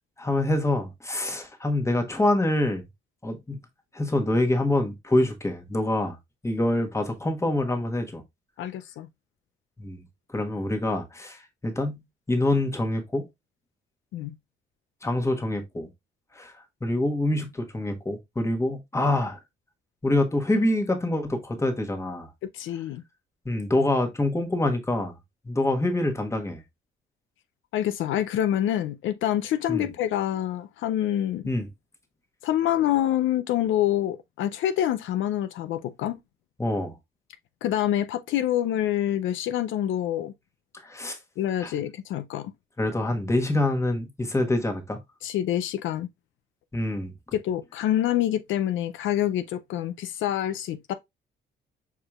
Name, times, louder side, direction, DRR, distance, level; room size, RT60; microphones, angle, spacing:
voice 1, 0.2-2.8 3.2-3.6 3.9-6.2 6.4-8.2 9.8-10.0 10.3-12.0 12.3-13.3 15.0-15.9 16.3-16.5 16.8-19.4 20.0-22.3 23.4-25.1 25.4-26.6 29.7-29.9 31.4-31.7 36.6-37.0 40.7-41.2 41.6-41.7 42.8-45.0 46.7-47.1, left 1 dB, 15° left, 1.3 m, -26 dB
voice 2, 8.6-9.1 14.1-14.3 22.5-23.0 27.7-31.5 32.4-36.2 37.6-40.3 41.4-42.5 45.2-46.1 47.3-50.9, left 12 dB, 75° left, 0.5 m, -26 dB
4.9 x 4.6 x 2.3 m
cardioid pair, 90°, 20 cm